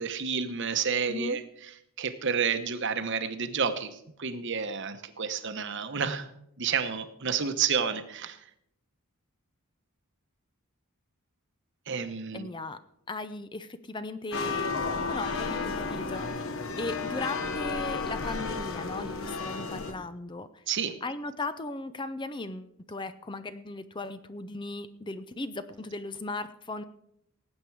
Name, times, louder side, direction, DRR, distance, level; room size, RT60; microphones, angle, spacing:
voice 1, 0.0-1.4 2.0-6.3 6.6-8.4 11.9-12.5 20.7-21.0, right 6 dB, 55° right, 10 dB, 1.0 m, -30 dB
voice 2, 1.0-1.4 12.3-12.8 13.1-14.7 15.1-16.3 16.8-20.6 21.0-26.8, left 2 dB, 20° left, 12 dB, 0.5 m, -37 dB
sound 1, 14.3-19.9, left 4 dB, 65° left, 1.2 m, -32 dB
18.5 x 8.3 x 4.7 m, 0.76 s
head